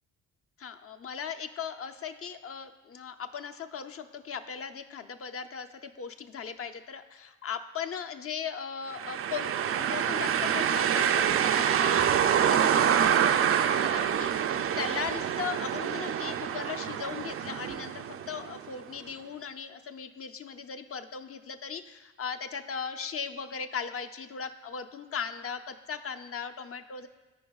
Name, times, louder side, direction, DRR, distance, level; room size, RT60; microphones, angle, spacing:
voice 1, 0.6-9.5 9.8-27.1, left 6 dB, 40° left, 7 dB, 0.7 m, -38 dB
sound 1, 8.9-18.7, right 9 dB, 40° right, 0.4 m, -26 dB
14.0 x 5.0 x 2.4 m, 1.2 s
supercardioid pair, 60°, 34 cm